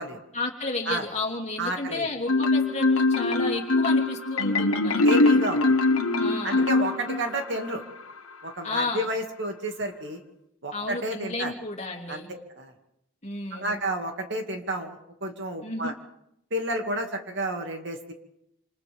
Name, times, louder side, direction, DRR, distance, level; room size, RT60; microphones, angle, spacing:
voice 1, 0.3-5.0 6.2-6.7 8.6-9.1 10.7-12.3 13.2-13.8 15.6-15.9, left 3 dB, 35° left, 1 dB, 2.9 m, -32 dB
voice 2, 1.6-2.1 5.0-5.8 6.4-7.8 8.4-10.2 10.6-11.5 12.1-12.7 13.5-15.9 16.5-18.1, right 1 dB, 55° right, 3 dB, 2.5 m, -31 dB
Marimba xylophone, 2.3-7.4, left 2 dB, 80° left, 1.4 m, -22 dB
28.0 x 27.5 x 3.7 m, 0.79 s
head